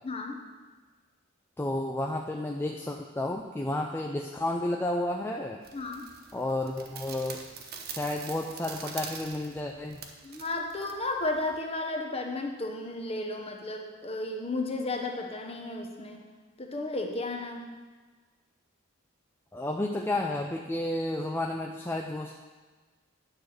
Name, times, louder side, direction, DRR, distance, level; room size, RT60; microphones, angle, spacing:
voice 1, 0.0-0.4 5.7-6.1 10.2-16.3 16.6-17.6, left 2 dB, 30° left, 2 dB, 1.0 m, -33 dB
voice 2, 1.6-5.6 6.3-7.4 7.9-10.0 19.5-22.3, left 1 dB, 10° left, 1 dB, 0.4 m, -31 dB
sound 1, 5.6-11.6, right 6 dB, 50° right, 0.8 m, -44 dB
9.6 x 4.6 x 6.4 m, 1.4 s
head